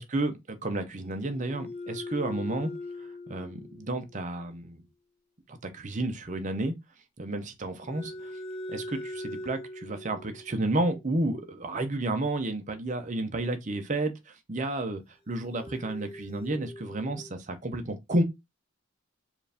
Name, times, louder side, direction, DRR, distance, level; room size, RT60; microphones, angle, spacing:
voice 1, 0.0-2.7 3.0-4.8 5.5-6.7 7.2-8.3 8.7-18.2, right 2 dB, 35° right, 0.6 m, -31 dB
sound 1, 1.0-4.4 7.8-11.2 15.3-17.3, left 1 dB, 25° left, 0.5 m, -41 dB
4.6 x 2.5 x 3.4 m
head